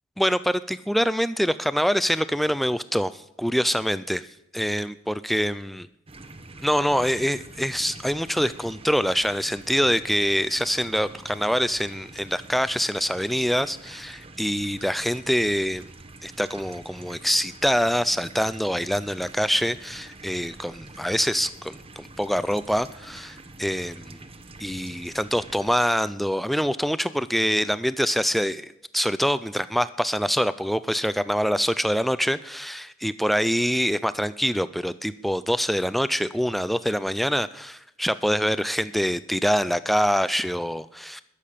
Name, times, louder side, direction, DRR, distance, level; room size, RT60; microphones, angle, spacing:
voice 1, 0.2-4.2 4.5-5.9 6.6-15.8 16.2-24.2 24.6-41.2, equal, ahead, 14 dB, 0.4 m, -25 dB
sound 1, 6.1-25.8, right 2 dB, 30° right, 1.0 m, -46 dB
21.0 x 7.5 x 6.7 m, 0.92 s
head